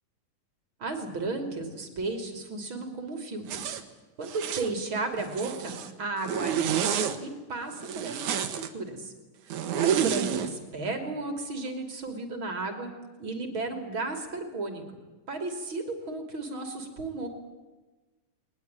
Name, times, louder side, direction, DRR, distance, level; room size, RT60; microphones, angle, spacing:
voice 1, 0.8-3.8 4.2-9.1 9.5-12.9 13.2-15.0 15.3-17.3, right 3 dB, 45° right, 6 dB, 3.7 m, -34 dB
Zipper (clothing), 3.5-3.8 4.3-4.7 5.2-5.9 6.2-7.2 7.8-8.7 9.5-10.5, right 9 dB, 85° right, 2.8 m, -29 dB
21.5 x 20.0 x 9.0 m, 1.2 s
omnidirectional pair, 3.3 m